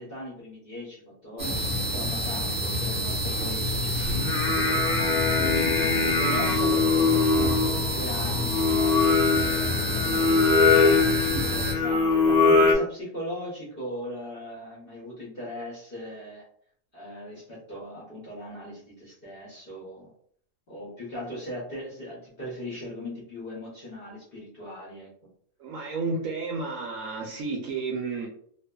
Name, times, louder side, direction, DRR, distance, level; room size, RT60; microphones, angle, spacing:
voice 1, 0.0-5.0 5.3-16.4 16.9-20.1 20.7-25.1, left 1 dB, 45° left, -7 dB, 0.8 m, -39 dB
sound 1, 1.4-11.7, equal, 45° right, 0.5 m, -28 dB
Singing, 4.0-12.7, left 4 dB, 75° left, 1.1 m, -23 dB
voice 2, 25.6-28.3, right 3 dB, 65° right, -2 dB, 0.9 m, -31 dB
2.6 x 2.4 x 2.2 m, 0.64 s
omnidirectional pair, 1.7 m